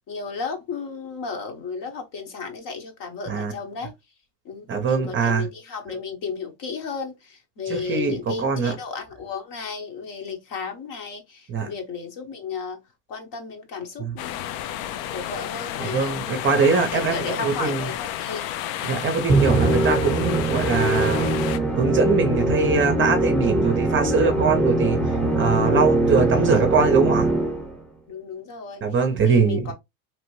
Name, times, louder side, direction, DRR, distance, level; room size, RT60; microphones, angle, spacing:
voice 1, 0.1-3.9 4.4-12.8 13.1-16.1 16.7-18.6 26.3-26.5 28.1-28.9 29.2-29.7, left 5 dB, 45° left, 1.1 m, -34 dB
voice 2, 4.7-5.5 7.7-8.8 11.5-11.7 14.0-14.2 15.8-17.8 18.8-21.4 21.7-25.0 25.4-27.3 28.8-29.6, right 5 dB, 25° right, 0.6 m, -22 dB
sound 1, 14.2-21.6, left 12 dB, 65° left, 0.5 m, -32 dB
Musical instrument, 19.3-27.8, right 2 dB, ahead, 0.9 m, -22 dB
3.0 x 2.5 x 3.0 m
supercardioid pair, 110°, 43 cm